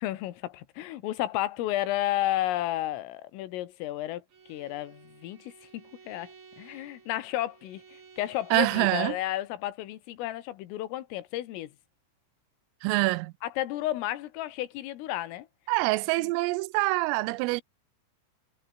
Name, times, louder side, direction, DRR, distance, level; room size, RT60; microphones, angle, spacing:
voice 1, 0.0-4.2 4.5-11.7 13.4-15.5 16.2-16.3, left 14 dB, 80° left, 4.1 m, -32 dB
Bowed string instrument, 4.3-9.0, right 6 dB, 45° right, 6.0 m, -55 dB
voice 2, 8.5-9.2 12.8-13.3 15.7-17.6, right 22 dB, 90° right, 3.3 m, -25 dB
omnidirectional pair, 5.9 m